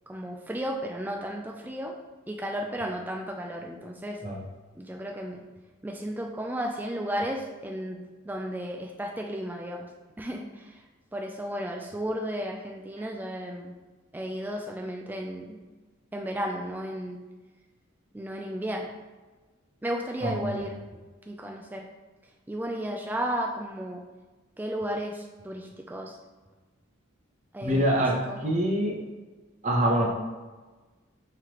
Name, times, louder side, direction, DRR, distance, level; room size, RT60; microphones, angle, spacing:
voice 1, 0.1-2.0 2.3-4.2 4.7-5.4 5.8-9.9 10.2-10.8 11.1-13.7 14.1-15.6 16.1-17.2 18.1-18.9 19.8-21.9 22.5-24.0 24.6-26.2 27.5-28.5, equal, 10° right, 1 dB, 0.3 m, -34 dB
voice 2, 27.6-28.2 28.4-29.0 29.6-30.1, right 1 dB, 35° right, -1 dB, 0.7 m, -24 dB
5.7 x 3.2 x 3.0 m, 1.3 s
head